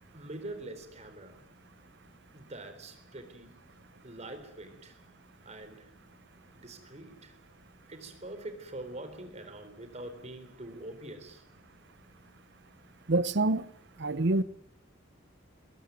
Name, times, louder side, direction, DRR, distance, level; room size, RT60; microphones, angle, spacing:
voice 1, 0.1-1.4 2.3-3.6 4.0-5.0 5.4-5.9 6.5-7.3 7.9-11.4, right 1 dB, 35° right, 4.0 m, -44 dB
voice 2, 13.1-13.7 14.0-14.4, right 2 dB, 60° right, 0.9 m, -26 dB
22.5 x 21.5 x 9.4 m
head